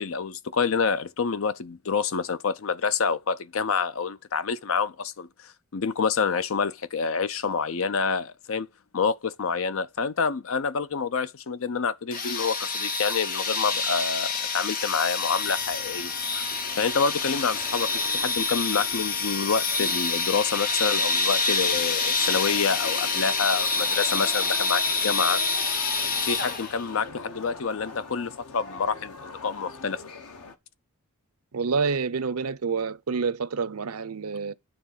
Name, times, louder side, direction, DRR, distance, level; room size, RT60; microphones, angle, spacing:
voice 1, 0.0-5.3 5.7-8.7 8.9-16.4 16.8-25.4 26.2-30.0, left 5 dB, 65° left, 0.5 m, -27 dB
sound 1, 12.1-26.9, left 4 dB, 40° left, 0.9 m, -27 dB
sound 2, 15.3-30.5, left 4 dB, 85° left, 1.1 m, -43 dB
voice 2, 31.5-34.5, right 5 dB, 80° right, 0.7 m, -28 dB
9.4 x 3.4 x 5.5 m
head